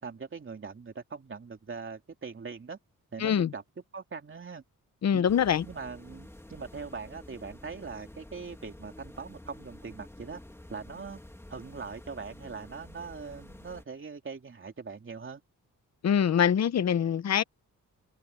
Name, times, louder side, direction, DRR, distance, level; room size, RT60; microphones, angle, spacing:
voice 1, 0.0-2.8 3.1-3.6 3.9-4.6 5.1-5.3 5.6-10.4 10.7-11.2 11.5-15.4, right 5 dB, 35° right, 3.2 m, -41 dB
voice 2, 3.2-3.5 5.0-5.6 16.0-17.4, left 8 dB, 50° left, 0.8 m, -24 dB
sound 1, 5.3-13.8, left 1 dB, 5° left, 2.6 m, -49 dB
open air
wide cardioid pair, 130°, 34 cm